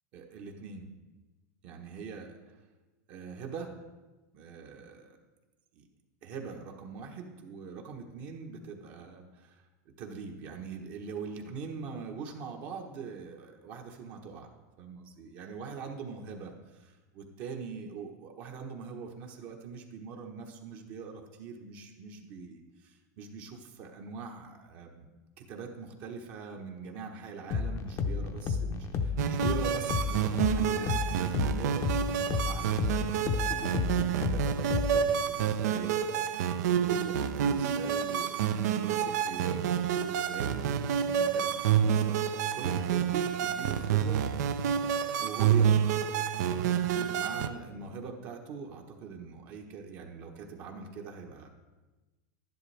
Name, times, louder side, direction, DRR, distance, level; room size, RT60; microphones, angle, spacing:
voice 1, 0.1-0.9 1.6-2.6 3.1-3.7 4.3-5.2 5.7-5.9 6.2-9.6 10.0-14.5 14.8-25.1 25.4-42.2 42.5-44.5 45.2-46.1 46.6-51.5, right 5 dB, 50° right, 1 dB, 1.1 m, -43 dB
sound 1, 27.5-35.2, left 5 dB, 30° left, 0.7 m, -32 dB
sound 2, 29.2-47.5, right 8 dB, 75° right, 0.6 m, -28 dB
11.5 x 10.5 x 3.4 m, 1.2 s
supercardioid pair, 145°, 9 cm